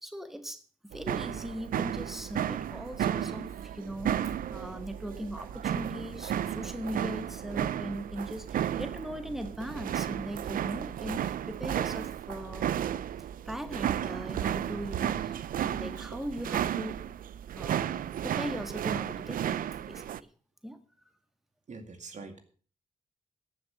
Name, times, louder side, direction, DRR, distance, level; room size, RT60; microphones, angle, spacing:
voice 1, 0.0-12.7 13.4-17.0 17.5-20.1 20.6-20.8, equal, ahead, 8 dB, 1.6 m, -39 dB
sound 1, 0.9-20.2, right 10 dB, 80° right, 0.5 m, -33 dB
voice 2, 21.7-22.4, right 4 dB, 55° right, 7 dB, 2.3 m, -44 dB
14.0 x 7.2 x 6.4 m, 0.41 s
cardioid pair, 75°, 14 cm